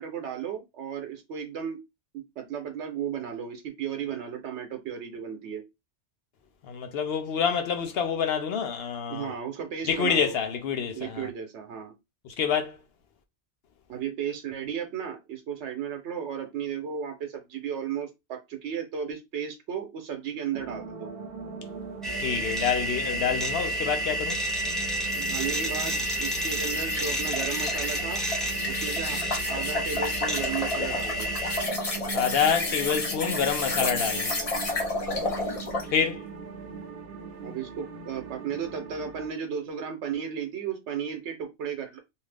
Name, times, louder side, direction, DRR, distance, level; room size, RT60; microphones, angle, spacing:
voice 1, 0.0-1.8 2.1-5.6 9.1-10.3 11.0-11.9 13.9-21.1 25.1-28.2 28.7-29.2 29.5-31.3 35.1-35.4 37.4-42.0, right 7 dB, 85° right, 1.0 m, -34 dB
voice 2, 6.6-9.3 9.9-11.3 12.4-12.8 22.2-24.4 32.1-34.3 35.9-36.2, left 7 dB, 65° left, 0.8 m, -27 dB
sound 1, 20.5-39.3, right 5 dB, 60° right, 0.8 m, -40 dB
sound 2, 22.0-31.6, equal, ahead, 0.8 m, -30 dB
sound 3, 25.1-35.9, left 2 dB, 35° left, 0.8 m, -32 dB
2.7 x 2.4 x 3.3 m
omnidirectional pair, 1.1 m